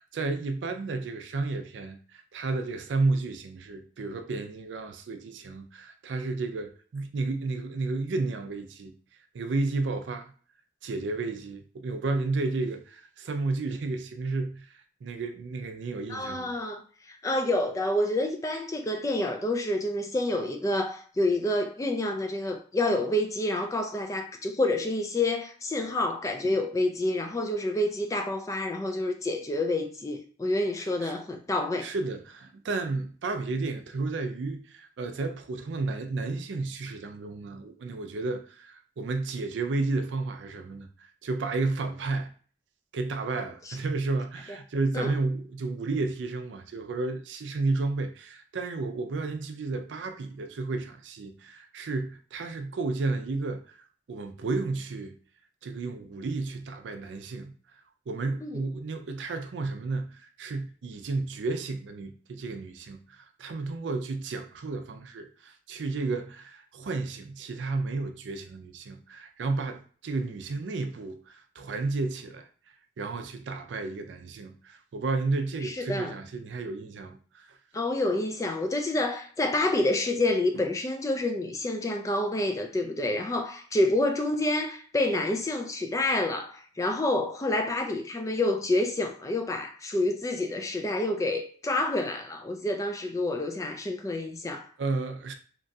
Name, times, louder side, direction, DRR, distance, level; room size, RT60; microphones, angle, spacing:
voice 1, 0.0-8.9 9.3-10.3 10.8-16.5 26.4-26.5 30.8-31.1 31.8-42.3 42.9-53.8 54.1-55.1 55.6-57.5 58.1-72.5 73.0-77.6 94.8-95.3, right 3 dB, 85° right, 0.4 m, -32 dB
voice 2, 16.1-16.8 17.1-31.9 44.9-45.1 58.4-58.5 75.6-76.1 77.7-94.7, left 1 dB, 15° left, 0.3 m, -28 dB
2.9 x 2.3 x 2.6 m
head